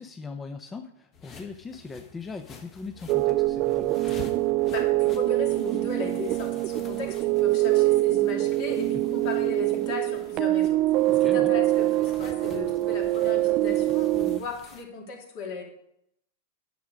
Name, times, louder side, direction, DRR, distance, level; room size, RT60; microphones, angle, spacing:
voice 1, 0.0-4.0 11.1-11.5, left 4 dB, 15° left, 6 dB, 0.5 m, -40 dB
sound 1, 1.1-14.8, left 5 dB, 30° left, 1.2 m, -49 dB
sound 2, 3.1-14.4, right 17 dB, 45° right, 0.3 m, -24 dB
voice 2, 4.7-10.8 11.2-15.6, left 4 dB, 55° left, 0 dB, 2.8 m, -36 dB
9.3 x 6.5 x 5.0 m, 0.75 s
hypercardioid pair, 120°, 0 cm